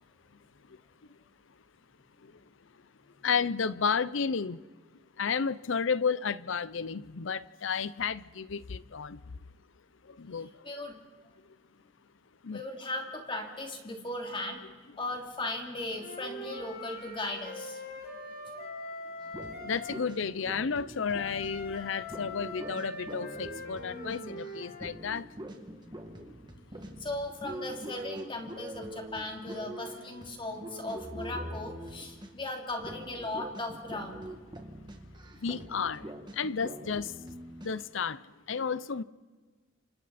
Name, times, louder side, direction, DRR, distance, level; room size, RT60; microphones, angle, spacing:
voice 1, 3.2-4.6 5.2-9.2 10.0-10.7 12.4-12.6 19.6-25.3 35.4-37.1 37.6-38.2 38.5-39.0, left 6 dB, 70° left, 0.6 m, -32 dB
voice 2, 10.6-10.9 12.5-14.6 15.0-17.8 24.7-24.8 27.0-34.3, left 2 dB, 25° left, 2.8 m, -37 dB
Wind instrument woodwind instrument, 15.9-20.0 21.0-24.9, left 2 dB, 50° left, 4.1 m, -42 dB
sound 1, 19.2-32.5 32.8-37.7, right 1 dB, 25° right, 2.1 m, -44 dB
29.5 x 26.5 x 4.3 m
head